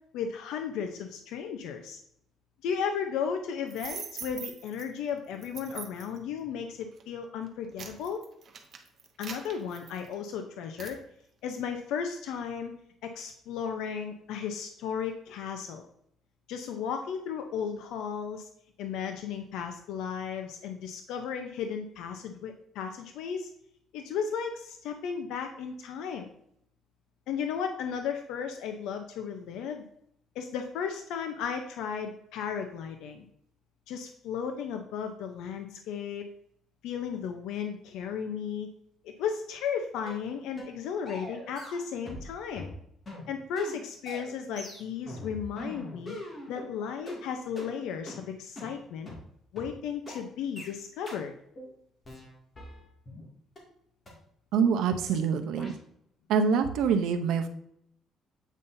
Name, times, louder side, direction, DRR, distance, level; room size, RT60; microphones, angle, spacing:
voice 1, 0.1-2.0 2.6-8.2 9.2-11.0 11.4-12.7 13.0-15.9 16.5-18.5 18.8-23.5 23.9-26.3 27.3-29.9 30.3-33.3 33.9-36.2 36.8-38.7 39.0-42.7 43.3-46.2 46.5-49.1 49.5-51.3, left 7 dB, 85° left, 6 dB, 0.6 m, -35 dB
sound 1, 3.7-4.8 5.4-6.2 6.8-7.0 7.5-10.3 10.8-11.0, right 6 dB, 40° right, 0.9 m, -42 dB
sound 2, 40.1-40.2 40.6-40.8 41.1-42.3 42.5-46.7 47.1-47.2 47.6-47.7 48.1-48.2 48.6-48.7 49.1-49.2 49.6-49.7 50.1-50.2 50.6-50.7 51.1-51.2 51.6-51.7 52.0-53.2 53.6-53.7 54.1-54.2 54.6-54.7 55.1-55.2 55.6-55.7, left 1 dB, 25° left, 2.2 m, -42 dB
voice 2, 54.5-55.8 56.3-57.5, right 6 dB, 80° right, 7 dB, 0.7 m, -25 dB
8.3 x 5.5 x 2.7 m, 0.70 s
cardioid pair, 140°, 0 cm